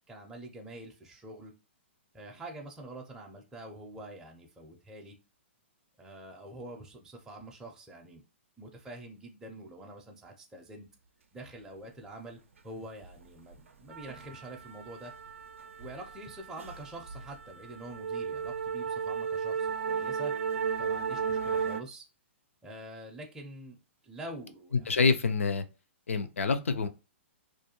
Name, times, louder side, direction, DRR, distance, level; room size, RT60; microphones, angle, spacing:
voice 1, 0.1-1.5 2.1-5.2 6.0-8.2 8.6-10.9 11.3-15.1 15.8-20.3 20.8-22.1 22.6-23.8 24.0-25.2, right 1 dB, 10° right, 0.4 m, -46 dB
sound 1, 13.0-13.3 13.5-21.8, right 6 dB, 80° right, 0.4 m, -34 dB
voice 2, 24.9-25.6 26.1-26.9, left 4 dB, 85° left, 0.4 m, -26 dB
2.4 x 2.2 x 2.8 m
hypercardioid pair, 125°, 7 cm